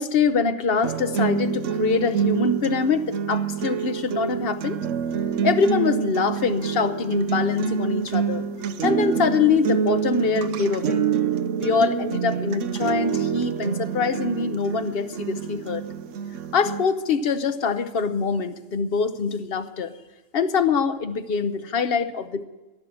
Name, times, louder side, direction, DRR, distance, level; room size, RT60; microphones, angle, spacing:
voice 1, 0.0-4.8 5.4-8.5 8.8-11.0 11.6-15.8 16.5-19.9 20.3-22.5, left 5 dB, 55° left, 11 dB, 1.0 m, -24 dB
sound 1, 0.8-16.8, right 7 dB, 85° right, 1.1 m, -27 dB
12.0 x 11.0 x 7.4 m, 1.1 s
omnidirectional pair, 1.2 m